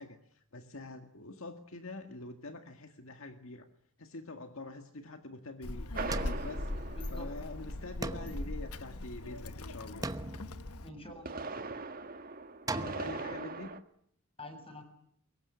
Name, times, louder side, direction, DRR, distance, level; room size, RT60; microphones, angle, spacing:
voice 1, 0.0-3.7 4.0-5.9 6.4-10.2 12.6-13.7, left 2 dB, 65° left, 7 dB, 1.9 m, -45 dB
Child speech kid speaking, 5.6-10.9, left 2 dB, 85° left, 1.2 m, -40 dB
sound 1, 5.9-8.0 11.0-13.8, right 3 dB, 40° right, 1.7 m, -41 dB
sound 2, 6.1-7.3 8.0-9.4 10.0-11.4 12.7-13.2, right 2 dB, 15° right, 1.0 m, -41 dB
voice 2, 6.9-7.4 10.8-11.9 14.4-14.8, left 1 dB, 25° left, 6 dB, 7.2 m, -48 dB
24.0 x 22.0 x 9.8 m, 0.67 s
head